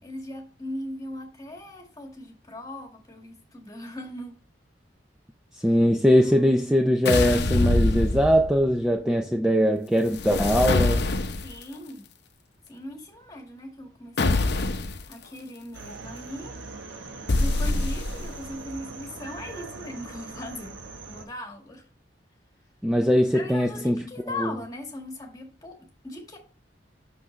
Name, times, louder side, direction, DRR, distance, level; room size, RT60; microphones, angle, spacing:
voice 1, 0.0-4.4 5.6-5.7 6.2-6.5 11.4-12.1 12.7-14.6 15.1-16.6 17.4-21.9 23.3-26.4, left 1 dB, 20° left, 1.7 m, -39 dB
voice 2, 5.5-11.1 22.8-24.0 24.4-24.5, equal, 5° right, 0.4 m, -21 dB
sound 1, 7.0-8.7 10.1-11.6 14.2-15.0 17.3-18.4, left 2 dB, 65° left, 0.7 m, -24 dB
sound 2, 15.7-21.2, right 3 dB, 90° right, 1.0 m, -41 dB
6.1 x 5.8 x 3.1 m
head